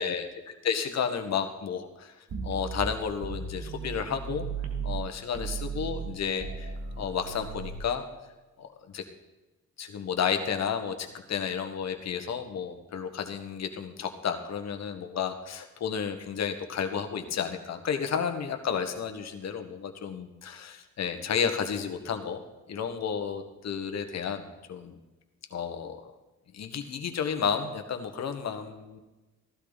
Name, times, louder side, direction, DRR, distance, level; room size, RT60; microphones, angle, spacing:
voice 1, 0.0-2.1 2.4-4.5 4.8-8.0 8.6-9.0 9.8-22.4 22.7-25.0 25.5-26.1 26.5-29.0, left 7 dB, 60° left, 7 dB, 1.6 m, -32 dB
sound 1, 2.3-5.0 5.3-7.8, right 5 dB, 60° right, 2.3 m, -36 dB
15.5 x 12.0 x 4.2 m, 1.1 s
cardioid pair, 90°, 30 cm